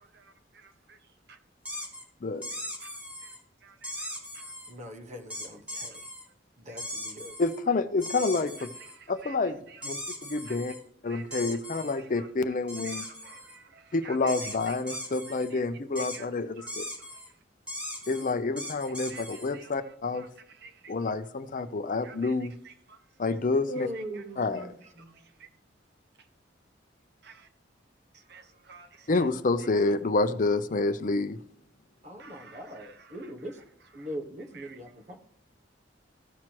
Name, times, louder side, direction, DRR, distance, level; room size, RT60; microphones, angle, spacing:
voice 1, 0.0-1.4 1.7-1.9 2.5-4.5 6.7-6.8 8.6-9.9 10.4-10.6 11.1-12.6 12.8-15.0 15.3-15.6 16.0-16.7 17.0-17.4 19.1-21.1 22.0-23.4 23.8-24.2 24.6-24.7 25.0-25.5 26.2-26.3 27.2-27.5 28.1-29.3 29.6-29.7 32.2-34.2 34.5-35.2, right 6 dB, 60° right, 1.0 m, -53 dB
sound 1, 1.6-2.0 2.4-3.4 3.8-4.7 5.3-6.2 6.8-7.6 8.0-9.0 9.8-10.8 11.3-12.0 12.7-13.6 14.3-15.5 16.0-16.2 16.7-17.3 17.7-19.5, left 1 dB, 5° right, 1.9 m, -39 dB
voice 2, 4.7-6.0 6.6-7.3 23.7-25.1 32.0-33.6 33.9-35.2, equal, 40° right, 1.3 m, -40 dB
voice 3, 7.4-8.7 9.1-9.6 9.8-10.7 11.0-13.0 13.9-16.8 18.1-20.3 20.9-22.5 23.2-23.9 24.4-24.7 29.1-31.4, left 3 dB, 45° left, 0.5 m, -28 dB
15.0 x 6.0 x 3.0 m
head